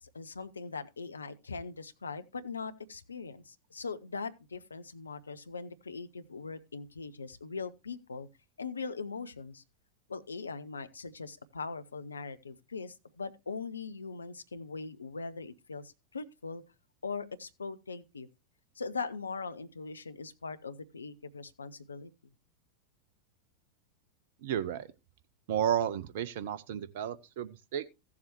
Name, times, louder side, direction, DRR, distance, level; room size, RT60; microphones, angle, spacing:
voice 1, 0.0-8.3 8.6-9.6 10.1-16.6 17.0-18.3 18.8-22.1, left 4 dB, 75° left, 0.7 m, -41 dB
voice 2, 24.4-24.9 25.5-27.9, right 10 dB, 55° right, 0.6 m, -32 dB
15.5 x 7.3 x 3.0 m
figure-of-eight pair, 90°, 0 cm